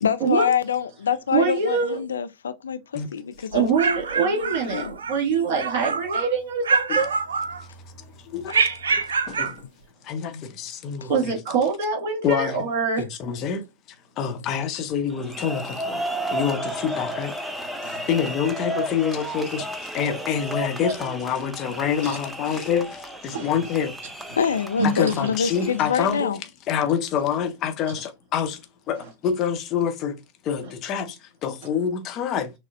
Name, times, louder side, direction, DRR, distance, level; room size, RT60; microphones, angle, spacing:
voice 1, 0.0-3.7 4.3-5.0 5.3-5.5 8.5-8.7 10.3-10.4 11.0-11.1 24.4-26.4, left 7 dB, 70° left, 0.4 m, -26 dB
voice 2, 1.3-2.0 3.5-7.1 11.1-13.0 17.8-18.2 22.0-22.2 23.3-23.7 24.8-25.1 26.8-26.9 29.0-29.1, right 5 dB, 50° right, 2.3 m, -25 dB
sound 1, 3.5-5.2 5.5-6.3 6.6-7.9 8.5-9.6, right 4 dB, 70° right, 0.4 m, -25 dB
voice 3, 8.3-8.6 8.9-9.6 10.1-11.3 12.2-12.5 13.0-13.6 14.2-16.0 16.3-17.4 18.1-19.7 19.9-22.9 23.2-23.9 25.0-26.3 26.7-28.6 28.9-30.2 30.5-31.1 31.4-32.5, left 7 dB, 35° left, 0.7 m, -26 dB
sound 2, 15.1-26.2, right 1 dB, 5° right, 0.6 m, -33 dB
6.2 x 2.1 x 2.5 m
figure-of-eight pair, 90°, 0 cm